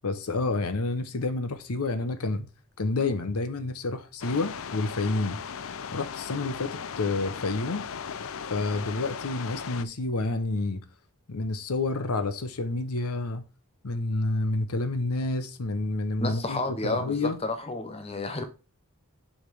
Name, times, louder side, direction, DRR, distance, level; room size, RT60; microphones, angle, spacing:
voice 1, 0.0-2.5 2.8-5.4 5.9-7.9 8.5-10.8 11.3-13.4 13.8-17.4, left 3 dB, 90° left, 0.8 m, -29 dB
sound 1, 4.2-9.9, left 6 dB, 65° left, 0.5 m, -37 dB
voice 2, 16.2-18.4, left 2 dB, 25° left, 0.7 m, -31 dB
7.2 x 5.2 x 3.3 m
head